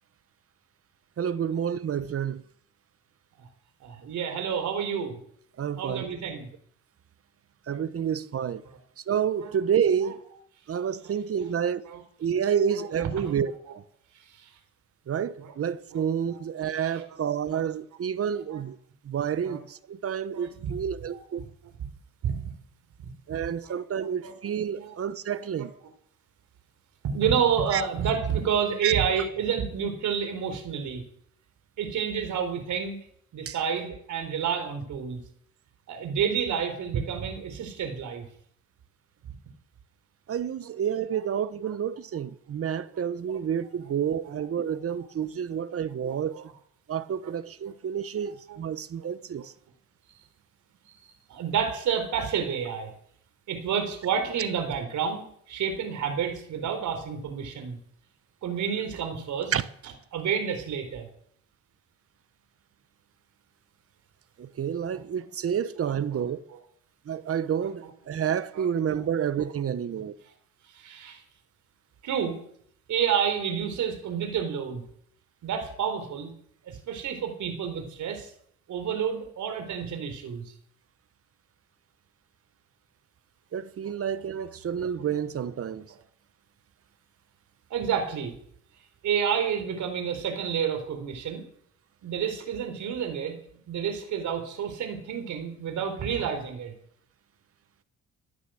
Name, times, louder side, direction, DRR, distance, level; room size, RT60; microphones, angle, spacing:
voice 1, 1.2-2.4 5.6-6.1 7.7-8.6 9.1-10.2 10.7-11.8 12.2-13.8 15.1-18.8 19.0-21.4 23.3-25.7 27.7-27.8 28.8-28.9 33.5-33.6 40.3-46.3 46.9-49.5 59.5-59.6 64.4-66.4 67.1-70.1 83.5-85.8, right 8 dB, 50° right, 1.0 m, -29 dB
voice 2, 3.8-5.2 5.8-6.5 8.6-8.8 9.4-9.5 9.9-10.2 11.0-11.1 11.4-12.0 12.5-13.7 14.3-14.5 15.4-15.5 15.9-16.4 16.8-17.2 17.5-17.6 18.3-18.6 19.4-19.6 20.3-21.5 22.2-22.4 23.0-23.1 23.6-23.8 24.0-24.3 24.8-25.0 25.3-25.7 27.0-31.0 31.8-32.9 33.3-35.2 35.9-38.3 40.6-40.8 41.1-41.3 41.6-42.0 42.9-43.0 43.3-43.9 44.2-44.8 45.5-45.6 46.1-46.5 47.2-47.3 48.2-48.6 49.0-49.1 49.4-49.5 51.3-52.9 53.5-55.2 55.5-57.8 58.4-61.1 64.9-65.0 65.8-66.2 66.5-66.6 67.4-67.9 68.5-69.1 69.4-69.5 69.9-70.0 70.7-71.2 72.0-72.4 72.9-74.8 75.4-76.3 76.6-78.3 78.7-80.5 83.8-83.9 84.3-84.5 85.0-85.5 87.7-88.3 89.0-91.4 92.0-93.4 93.7-96.7, right 7 dB, 75° right, 4.3 m, -30 dB
15.5 x 10.5 x 7.8 m
cardioid pair, 90°, 30 cm